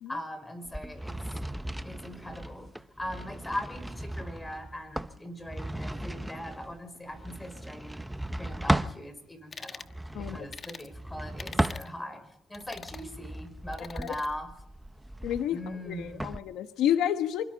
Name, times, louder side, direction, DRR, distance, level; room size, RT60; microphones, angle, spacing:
voice 1, 0.1-1.4 1.8-2.7 3.0-8.0 8.4-9.9 10.2-12.2 12.5-14.5 15.5-16.3, left 1 dB, 15° left, 9 dB, 5.5 m, -40 dB
sound 1, 0.7-9.0 9.8-12.3 12.8-16.4, right 1 dB, 5° right, 1.0 m, -35 dB
sound 2, 9.5-9.9 10.5-10.9 11.4-11.9 12.5-13.1 13.7-14.3, left 5 dB, 40° left, 1.3 m, -43 dB
voice 2, 15.2-17.4, left 10 dB, 85° left, 8 dB, 1.2 m, -30 dB
26.5 x 24.5 x 4.1 m, 0.79 s
cardioid pair, 90°, 0 cm